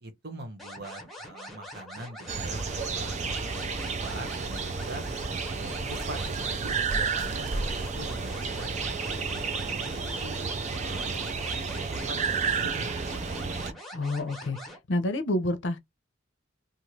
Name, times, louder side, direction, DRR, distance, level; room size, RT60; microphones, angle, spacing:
voice 1, 0.0-5.1 5.5-9.1 9.5-10.3 10.8-11.3 11.9-13.4, right 2 dB, 55° right, 1.0 m, -44 dB
sound 1, 0.6-14.8, left 1 dB, ahead, 0.9 m, -44 dB
sound 2, 2.3-13.7, right 4 dB, 35° right, 0.4 m, -31 dB
voice 2, 13.9-14.6 14.9-15.8, left 1 dB, 70° left, 0.7 m, -28 dB
2.5 x 2.5 x 3.1 m
head